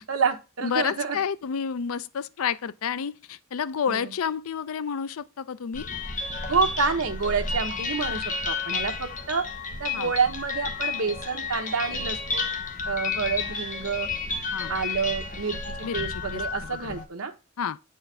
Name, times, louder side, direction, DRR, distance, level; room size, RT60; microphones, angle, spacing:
voice 1, 0.0-1.2 3.9-4.1 6.5-9.4 9.8-12.5 12.9-14.1 14.7-17.3, right 5 dB, 80° right, 1.2 m, -28 dB
voice 2, 0.6-5.9 9.9-10.1 14.5-14.7 15.8-16.4 16.8-17.0 17.6-17.8, left 7 dB, 85° left, 0.5 m, -30 dB
sound 1, 5.7-17.0, left 4 dB, 40° left, 1.1 m, -32 dB
8.6 x 4.5 x 3.3 m
head